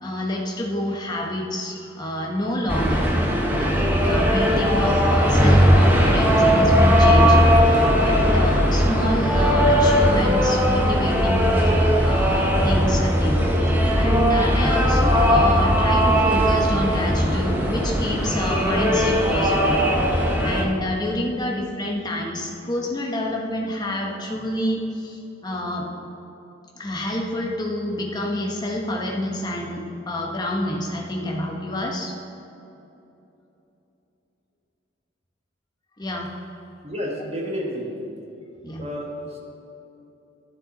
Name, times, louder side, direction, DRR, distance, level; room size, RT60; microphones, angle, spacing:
voice 1, 0.0-3.1 3.6-11.7 12.0-19.8 20.2-25.9 26.8-32.1 36.0-36.3 38.6-38.8, left 1 dB, 20° left, -1 dB, 1.1 m, -28 dB
sound 1, 2.7-20.6, equal, 10° right, 0.9 m, -18 dB
voice 2, 36.8-38.1 38.8-39.4, equal, 35° right, -1 dB, 1.4 m, -30 dB
12.0 x 7.0 x 4.0 m, 3.0 s
head